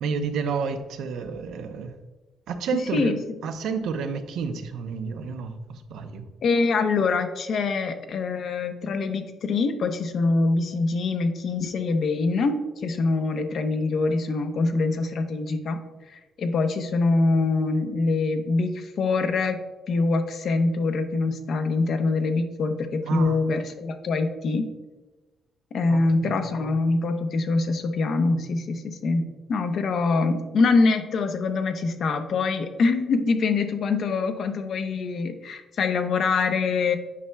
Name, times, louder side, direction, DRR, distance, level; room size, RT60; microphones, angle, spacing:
voice 1, 0.0-1.9 2.5-3.1 3.4-6.2 23.1-23.4 25.9-26.3, right 5 dB, 80° right, 7 dB, 0.6 m, -30 dB
voice 2, 6.4-15.8 16.1-24.7 25.7-37.0, left 3 dB, 60° left, 7 dB, 0.7 m, -24 dB
8.4 x 5.4 x 2.2 m, 1.1 s
cardioid pair, 90°, 0 cm